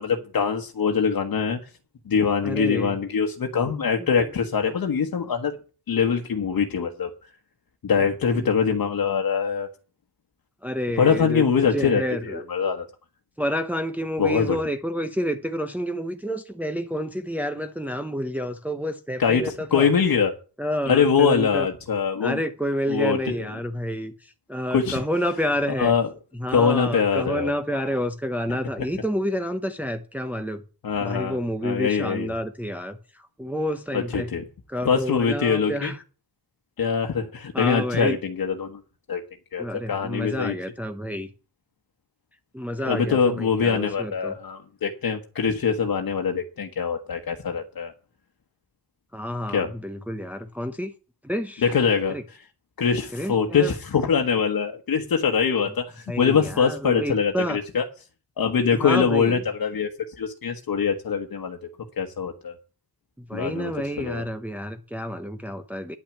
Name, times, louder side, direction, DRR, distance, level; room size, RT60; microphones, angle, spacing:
voice 1, 0.0-1.7 2.1-5.6 5.9-7.1 7.8-9.7 11.0-12.8 14.2-14.6 19.2-20.3 20.9-22.4 22.9-23.4 24.7-25.0 25.7-26.1 26.5-28.0 30.8-31.4 31.6-32.3 33.9-34.4 34.8-35.9 36.8-38.8 39.1-39.2 39.5-40.5 42.8-47.9 49.5-49.7 51.6-52.4 52.8-57.8 58.4-59.9 60.2-61.6 62.0-62.5 63.3-63.7 64.0-64.2, left 6 dB, 65° left, 1.4 m, -23 dB
voice 2, 2.4-2.9 4.0-4.1 8.4-8.5 10.6-11.5 11.7-12.4 13.4-19.9 20.6-21.7 22.2-25.9 26.4-30.6 31.0-34.3 34.7-36.0 37.5-38.2 39.6-41.3 42.5-44.3 49.1-50.9 51.2-51.7 52.1-52.2 53.1-53.7 56.1-57.6 58.7-59.4 63.2-66.0, equal, 5° right, 0.8 m, -29 dB
10.5 x 6.0 x 8.7 m
wide cardioid pair, 105°, 38 cm